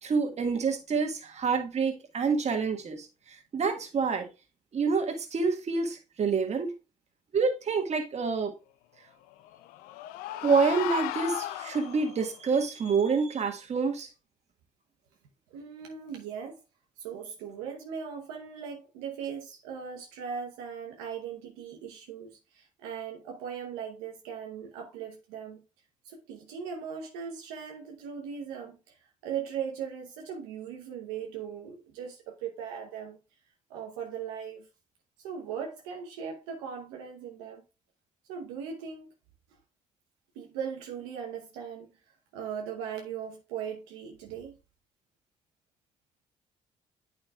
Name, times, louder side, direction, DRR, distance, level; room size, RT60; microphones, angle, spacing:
voice 1, 0.0-4.3 4.7-6.7 7.3-8.5 10.4-14.1, right 5 dB, 50° right, 1.7 m, -27 dB
sound 1, 9.3-12.3, left 15 dB, 80° left, 0.4 m, -36 dB
voice 2, 15.5-16.6 17.0-25.6 26.0-33.2 33.7-34.7 35.2-37.6 38.3-39.1 40.3-41.9 42.3-44.6, right 7 dB, 85° right, 0.9 m, -39 dB
8.7 x 5.2 x 2.3 m
hypercardioid pair, 55°, 14 cm